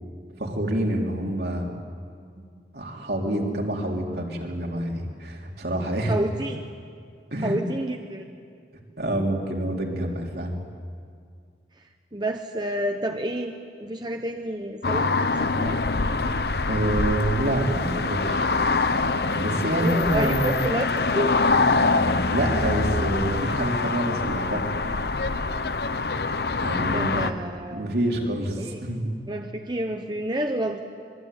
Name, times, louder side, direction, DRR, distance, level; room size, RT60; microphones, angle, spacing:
voice 1, 0.4-1.7 2.7-6.2 7.3-7.6 9.0-10.6 16.7-18.4 19.3-20.6 22.3-24.6 26.6-27.4 27.7-29.1, right 1 dB, 65° right, 0 dB, 3.9 m, -27 dB
voice 2, 6.0-6.6 7.4-8.2 12.1-13.5 13.8-15.8 19.8-21.4 26.9-27.9 28.6-28.8 29.3-30.8, right 1 dB, 25° right, 4 dB, 1.1 m, -29 dB
sound 1, 14.8-27.3, left 3 dB, 60° left, 1.0 m, -24 dB
25.5 x 23.0 x 9.4 m, 2.2 s
head